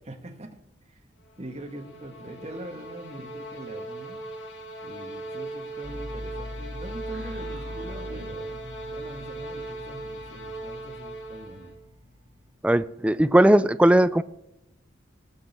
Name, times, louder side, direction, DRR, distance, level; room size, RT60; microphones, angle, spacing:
voice 1, 0.1-1.1 1.4-4.2 4.8-11.8, right 1 dB, 35° right, 2 dB, 1.4 m, -42 dB
sound 1, 1.3-11.8, right 2 dB, 75° left, 2.3 m, -39 dB
sound 2, 5.8-12.5, equal, 70° right, 2.5 m, -41 dB
voice 2, 12.6-14.2, right 1 dB, 5° right, 12 dB, 0.3 m, -18 dB
18.5 x 6.2 x 5.4 m, 0.85 s
head